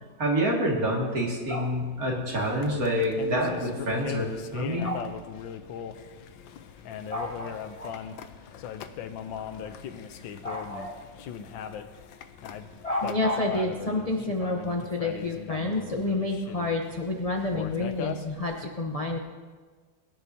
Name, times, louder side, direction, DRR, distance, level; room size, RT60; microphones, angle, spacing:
voice 1, 0.2-4.9, equal, 50° right, -2 dB, 2.6 m, -27 dB
sound 1, 2.3-18.7, left 8 dB, 80° left, 1.4 m, -39 dB
voice 2, 7.1-8.0 10.4-11.0 12.8-19.2, left 2 dB, 65° left, 1 dB, 0.3 m, -29 dB
22.0 x 10.5 x 2.8 m, 1.5 s
omnidirectional pair, 2.1 m